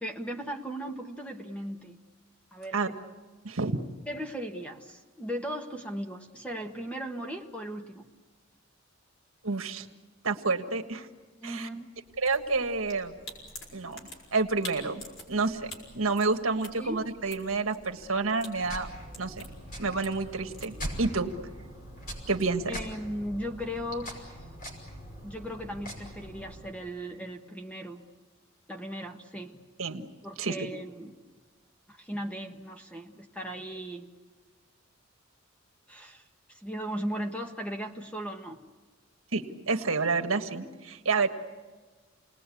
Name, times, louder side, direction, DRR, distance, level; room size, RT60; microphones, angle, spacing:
voice 1, 0.0-2.0 2.5-3.0 4.1-8.1 11.4-11.9 16.8-17.0 22.7-24.4 25.2-28.0 28.7-29.6 30.2-31.1 31.9-34.1 35.9-36.2 36.5-38.6, equal, 5° left, 1.4 m, -37 dB
voice 2, 3.4-3.8 9.4-9.9 10.2-11.1 11.4-11.7 12.2-13.2 13.7-14.0 14.3-15.0 15.3-18.9 19.2-19.3 19.8-21.3 22.3-22.8 29.8-30.1 30.4-30.7 39.3-41.3, right 4 dB, 80° right, 1.6 m, -29 dB
sound 1, 12.0-20.8, left 2 dB, 75° left, 6.1 m, -48 dB
sound 2, 18.6-26.7, equal, 40° left, 5.5 m, -42 dB
29.5 x 20.0 x 8.5 m
head